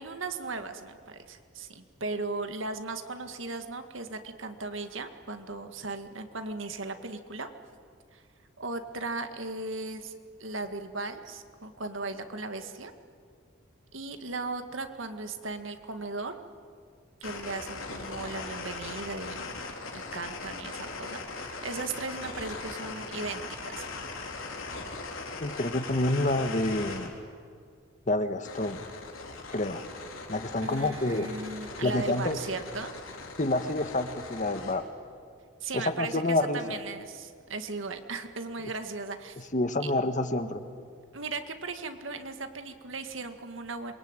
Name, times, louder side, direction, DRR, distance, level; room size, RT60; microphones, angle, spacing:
voice 1, 0.0-7.5 8.1-8.2 8.6-10.1 10.4-12.9 13.9-16.4 17.2-19.6 19.9-23.8 30.6-32.9 35.6-39.5 41.1-43.9, right 3 dB, 70° right, 7 dB, 1.9 m, -37 dB
sound 1, 17.2-27.1 28.4-34.7, left 3 dB, 90° left, 4.0 m, -40 dB
voice 2, 25.4-27.1 28.1-28.9 29.5-29.8 30.3-31.3 31.8-32.4 33.4-34.8 35.7-36.8 39.5-40.6, left 2 dB, 40° left, 9 dB, 1.4 m, -28 dB
27.0 x 23.0 x 9.0 m, 2.1 s
head